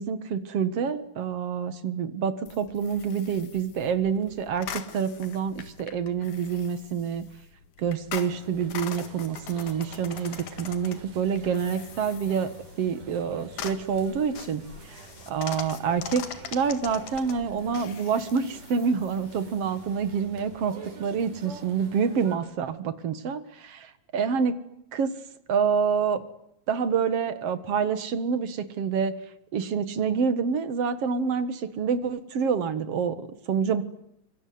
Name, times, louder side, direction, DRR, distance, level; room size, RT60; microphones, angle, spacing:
voice 1, 0.0-7.2 7.8-12.5 12.8-24.6 24.9-25.2 25.5-26.2 26.7-29.2 29.5-33.8, right 6 dB, 55° right, 13 dB, 2.4 m, -27 dB
sound 1, 2.5-20.7, left 8 dB, 75° left, 3.3 m, -43 dB
sound 2, 8.2-22.4, right 4 dB, 80° right, 5.4 m, -48 dB
25.0 x 24.5 x 9.5 m, 0.77 s
omnidirectional pair, 3.7 m